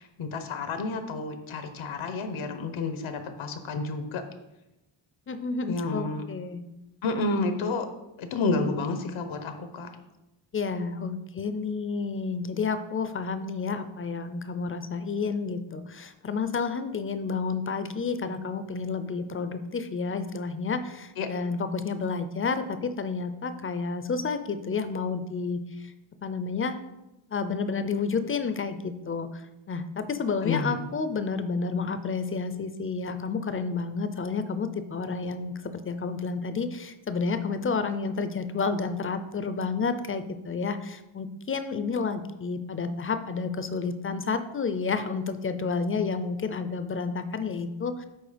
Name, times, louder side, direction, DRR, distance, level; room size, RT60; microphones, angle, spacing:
voice 1, 0.0-4.2 5.7-6.2 7.0-7.9 8.2-9.9 21.2-21.3 30.4-30.8, left 3 dB, 85° left, 7 dB, 0.9 m, -30 dB
voice 2, 5.3-6.6 10.5-25.9 26.2-26.8 27.3-29.4 29.7-48.1, left 4 dB, 30° left, 10 dB, 0.4 m, -30 dB
7.9 x 4.1 x 5.0 m, 0.96 s
wide cardioid pair, 150°, 47 cm